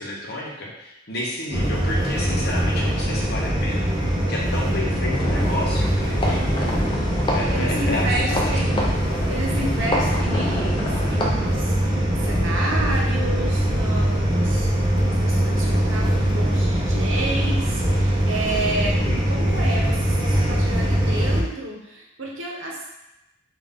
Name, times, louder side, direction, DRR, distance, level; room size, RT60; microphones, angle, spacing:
voice 1, 0.0-6.4 7.3-8.8 9.5-9.9 19.0-19.6, left 1 dB, 50° left, -3 dB, 0.8 m, -31 dB
sound 1, 1.5-21.4, equal, 25° right, 0.6 m, -22 dB
sound 2, 5.1-11.3, left 1 dB, 20° left, 0.4 m, -28 dB
voice 2, 7.5-8.8 9.3-14.7 15.0-22.9, right 1 dB, 70° right, -2 dB, 0.8 m, -31 dB
3.7 x 2.4 x 3.6 m, 0.92 s
head